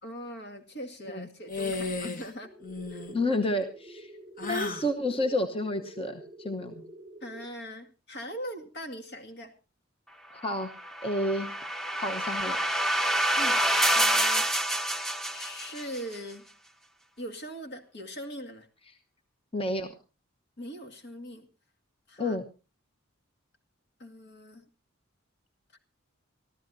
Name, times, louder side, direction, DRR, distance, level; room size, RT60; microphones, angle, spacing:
voice 1, 0.0-2.5 2.9-3.1 7.2-9.5 13.4-13.6 13.9-14.5 15.3-16.4 17.2-18.7 20.6-21.5 22.1-22.4 24.0-24.7 25.7-25.8, equal, 60° left, 4 dB, 2.1 m, -41 dB
sound 1, 1.5-2.3 2.6-3.2 4.4-4.9, left 3 dB, 45° left, 1.6 m, -34 dB
sound 2, 2.4-7.5, right 1 dB, 40° right, 0.8 m, -47 dB
voice 2, 3.1-4.1 4.4-6.8 10.3-10.7 11.0-11.5 12.0-12.6 19.5-19.9 22.2-22.4, left 1 dB, 30° left, 6 dB, 1.0 m, -30 dB
sound 3, 10.7-16.0, right 1 dB, ahead, 0.9 m, -27 dB
25.0 x 14.0 x 2.7 m, 0.32 s
head